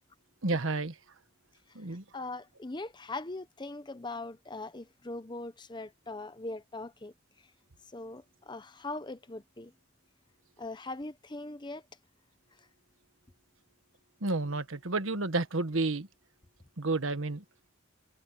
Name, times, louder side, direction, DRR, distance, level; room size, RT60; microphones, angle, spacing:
voice 1, 0.4-0.9 1.7-2.0 14.2-16.1 16.8-17.4, right 2 dB, 70° right, 1.4 m, -30 dB
voice 2, 2.1-7.1 7.9-9.7 10.6-11.8, left 2 dB, 20° left, 0.8 m, -40 dB
head